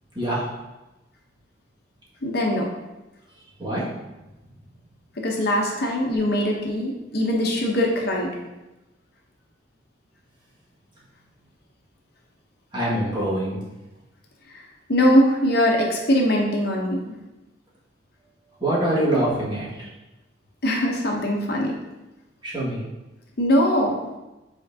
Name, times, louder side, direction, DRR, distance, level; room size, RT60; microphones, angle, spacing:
voice 1, 2.2-2.7 5.2-8.3 14.9-17.0 20.6-21.7 23.4-24.0, equal, 55° left, -1 dB, 0.9 m, -21 dB
voice 2, 12.7-13.6 18.6-19.7 22.4-22.8, right 1 dB, 25° right, -8 dB, 2.0 m, -24 dB
8.2 x 4.4 x 2.8 m, 1.0 s
head